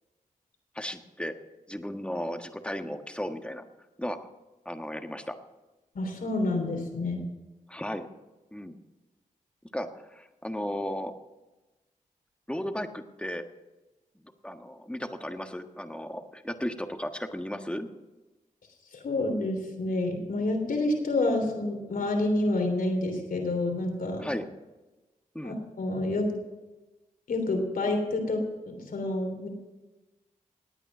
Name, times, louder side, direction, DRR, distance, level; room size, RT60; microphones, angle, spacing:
voice 1, 0.7-1.3 1.7-3.6 4.0-4.2 4.6-5.4 7.7-8.1 8.5-8.7 9.7-11.1 12.5-13.4 14.4-17.9 24.2-24.4 25.3-25.6, equal, 5° left, 6 dB, 1.4 m, -35 dB
voice 2, 5.9-7.2 18.9-24.3 25.4-26.3 27.3-28.4 28.6-29.5, left 2 dB, 80° left, 3 dB, 3.2 m, -28 dB
18.5 x 9.1 x 6.1 m, 1.1 s
cardioid pair, 55°, 15 cm